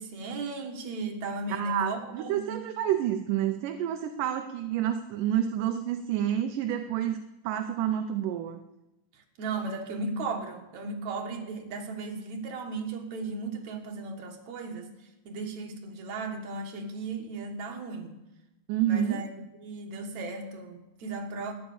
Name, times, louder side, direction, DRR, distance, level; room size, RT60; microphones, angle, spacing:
voice 1, 0.0-2.6 9.4-14.9 15.2-18.1 18.9-19.3 19.6-21.5, right 3 dB, 60° right, 2 dB, 2.9 m, -36 dB
voice 2, 1.5-8.6 18.7-19.2, right 10 dB, 80° right, 7 dB, 2.2 m, -29 dB
12.5 x 10.5 x 7.2 m, 0.94 s
omnidirectional pair, 3.9 m